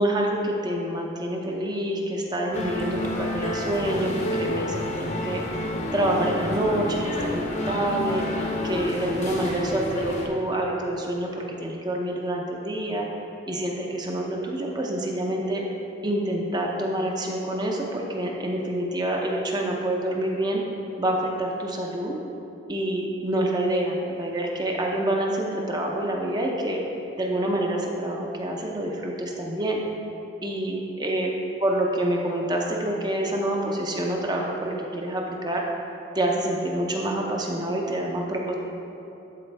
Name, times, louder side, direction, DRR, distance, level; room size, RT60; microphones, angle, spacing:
voice 1, 0.0-5.4 5.9-8.3 8.6-11.3 11.6-13.1 13.5-15.6 16.0-20.6 21.0-22.2 22.7-26.8 27.2-29.8 30.4-31.3 31.6-35.6 36.1-38.5, right 1 dB, 20° right, 0 dB, 0.6 m, -27 dB
sound 1, 2.5-10.3, left 1 dB, 35° left, 0.7 m, -29 dB
11.5 x 4.4 x 3.4 m, 2.9 s
head